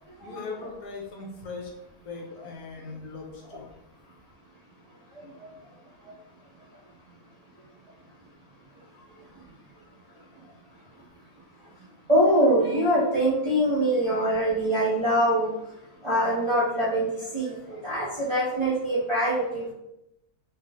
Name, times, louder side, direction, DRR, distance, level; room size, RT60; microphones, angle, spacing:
voice 1, 0.2-1.7 2.0-3.7, left 4 dB, 70° left, 0 dB, 1.1 m, -39 dB
voice 2, 12.1-15.5 16.0-19.7, right 1 dB, 30° right, -9 dB, 0.6 m, -23 dB
3.2 x 2.9 x 2.9 m, 0.85 s
omnidirectional pair, 1.7 m